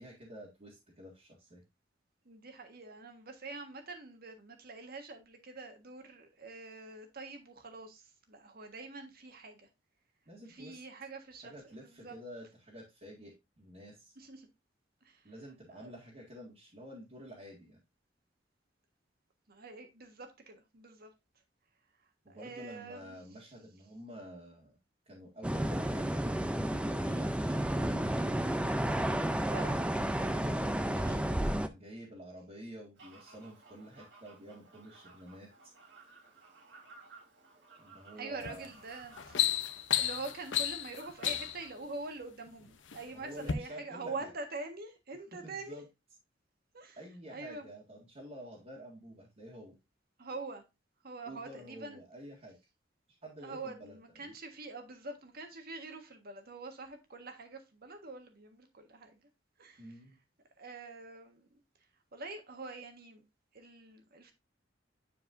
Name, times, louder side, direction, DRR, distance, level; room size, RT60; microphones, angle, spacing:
voice 1, 0.0-1.6 10.2-10.8 11.4-14.1 15.2-17.8 22.2-24.8 25.0-26.2 26.5-27.6 30.0-35.5 37.8-38.7 43.1-44.3 45.4-45.9 47.0-49.7 51.3-52.5 53.2-54.3 59.8-60.2, equal, 35° right, 1.8 m, -49 dB
voice 2, 2.2-9.7 10.5-12.2 14.2-14.5 15.0-15.3 15.7-15.9 19.5-21.1 22.0-23.1 27.0-27.3 29.4-29.8 30.9-31.3 38.2-45.8 46.7-47.0 47.3-47.6 50.2-50.6 51.0-52.0 53.4-59.2 59.6-59.9 60.6-61.6 62.1-63.2 63.5-64.3, right 3 dB, 55° right, 1.5 m, -45 dB
sound 1, 25.4-31.7, right 1 dB, 5° right, 0.4 m, -31 dB
Fowl, 33.0-41.8, right 3 dB, 80° right, 3.1 m, -58 dB
sound 2, 38.4-38.7 39.0-41.7 42.5-43.0 43.4-43.5, left 11 dB, 80° left, 0.7 m, -32 dB
9.8 x 4.7 x 2.6 m
head